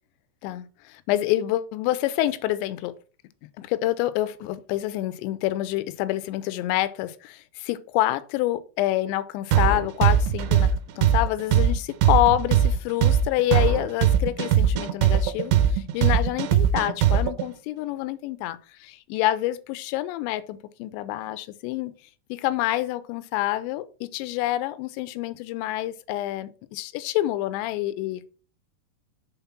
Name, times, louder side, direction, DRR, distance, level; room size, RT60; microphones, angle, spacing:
voice 1, 0.4-3.0 3.6-10.7 11.0-21.9 22.3-28.3, left 15 dB, 90° left, 2.8 m, -27 dB
sound 1, 9.5-17.4, right 10 dB, 85° right, 2.8 m, -20 dB
6.9 x 3.6 x 5.8 m
omnidirectional pair, 4.9 m